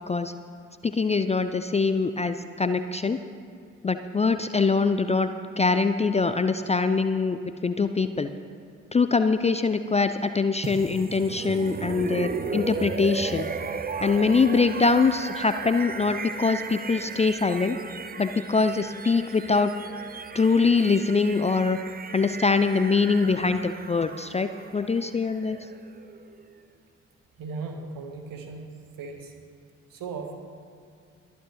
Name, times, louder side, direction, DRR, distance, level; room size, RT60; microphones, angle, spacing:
voice 1, 0.8-3.2 3.8-5.3 5.6-8.3 8.9-13.5 14.0-17.8 18.2-19.7 20.3-21.8 22.1-25.6, left 4 dB, 15° left, 10 dB, 0.5 m, -23 dB
sound 1, 10.6-26.5, right 5 dB, 25° right, 0.7 m, -36 dB
voice 2, 27.4-28.7 29.0-29.3 29.9-30.3, right 4 dB, 55° right, 4 dB, 1.6 m, -37 dB
22.5 x 9.2 x 3.2 m, 2.3 s
figure-of-eight pair, 40°, 39 cm